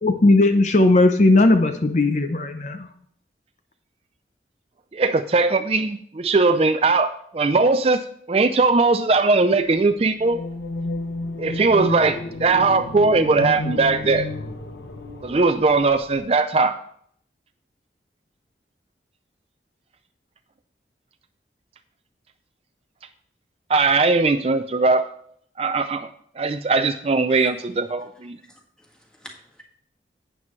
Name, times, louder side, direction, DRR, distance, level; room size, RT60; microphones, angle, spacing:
voice 1, 0.0-2.9, left 2 dB, 40° left, 7 dB, 0.7 m, -17 dB
voice 2, 4.9-10.4 11.4-14.3 15.2-16.8 23.7-25.0 25.6-26.1 26.4-28.4, right 3 dB, 35° right, 9 dB, 0.4 m, -19 dB
sound 1, 10.2-16.2, left 2 dB, 70° left, 1.0 m, -32 dB
voice 3, 28.5-29.6, equal, 5° left, -1 dB, 1.8 m, -46 dB
12.0 x 9.1 x 3.2 m, 0.63 s
head